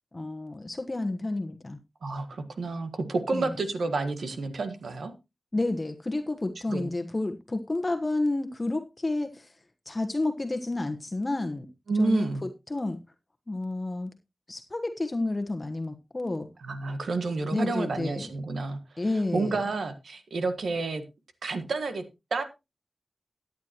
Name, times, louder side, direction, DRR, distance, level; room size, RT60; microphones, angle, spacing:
voice 1, 0.1-1.8 3.3-3.5 5.5-9.5 9.9-11.7 12.0-13.0 13.5-14.1 14.5-16.5 17.5-18.3 19.0-19.6, left 2 dB, 35° left, 8 dB, 1.2 m, -30 dB
voice 2, 2.0-5.1 6.7-6.9 11.9-12.4 16.6-19.0 19.3-21.0 21.4-22.0 22.3-22.4, right 3 dB, 90° right, 9 dB, 1.5 m, -30 dB
13.5 x 9.5 x 3.0 m, 0.25 s
cardioid pair, 45°, 0 cm